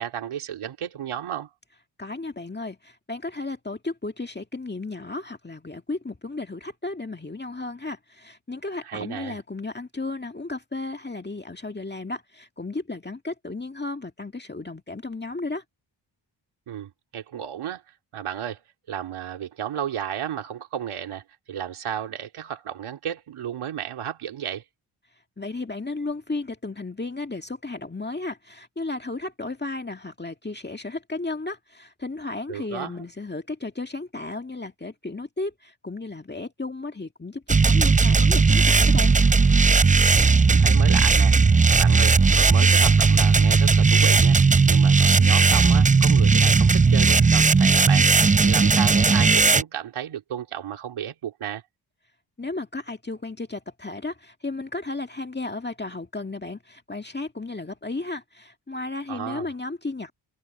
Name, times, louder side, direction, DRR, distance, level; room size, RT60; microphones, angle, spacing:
voice 1, 0.0-1.5 8.8-9.4 16.7-17.8 18.1-18.6 18.9-24.6 32.5-32.9 40.1-48.1 48.4-51.6 59.1-59.5, right 9 dB, 85° right, 2.9 m, -33 dB
voice 2, 2.0-15.6 25.4-39.1 52.4-60.1, left 3 dB, 20° left, 2.0 m, -34 dB
sound 1, 37.5-49.6, right 4 dB, 15° right, 0.5 m, -17 dB
cardioid pair, 55°, 49 cm